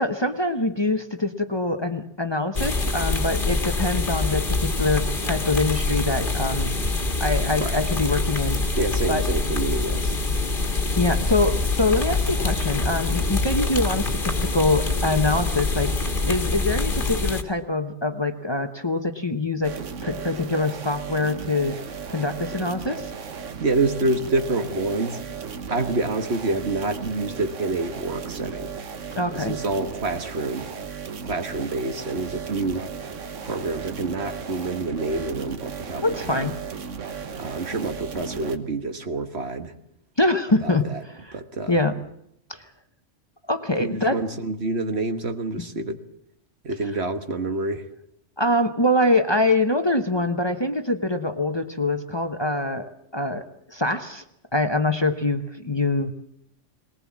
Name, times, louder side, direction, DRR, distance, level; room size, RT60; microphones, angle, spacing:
voice 1, 0.0-6.7 7.2-8.6 9.1-9.2 11.0-21.8 22.1-23.1 29.1-29.6 36.0-36.5 40.2-41.3 41.7-42.0 42.5-42.6 43.5-44.2 48.4-54.2 54.5-56.1, left 2 dB, 25° left, 7 dB, 1.0 m, -24 dB
sound 1, 2.6-17.4, left 3 dB, 45° left, 1.8 m, -25 dB
voice 2, 8.8-10.2 23.6-25.2 25.7-28.7 29.3-30.7 31.2-32.9 33.4-36.5 37.3-39.7 40.6-41.0 41.3-41.8 43.8-46.0 46.6-47.9, right 2 dB, 60° right, 8 dB, 1.6 m, -27 dB
sound 2, 19.6-38.6, right 6 dB, 85° right, 1.6 m, -36 dB
20.5 x 19.0 x 7.4 m, 0.74 s
omnidirectional pair, 1.2 m